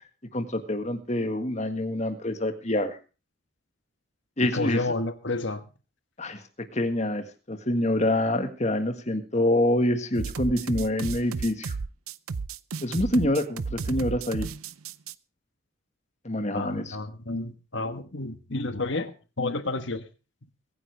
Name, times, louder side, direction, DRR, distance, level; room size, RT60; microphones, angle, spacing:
voice 1, 0.3-3.0 4.4-4.8 6.2-6.4 6.7-11.7 12.8-14.5 16.2-17.0, left 1 dB, 35° left, 1.7 m, -26 dB
voice 2, 4.4-5.7 16.5-20.1, left 2 dB, 60° left, 1.4 m, -30 dB
sound 1, 10.1-15.1, right 5 dB, 90° right, 0.6 m, -33 dB
22.5 x 9.8 x 3.4 m
head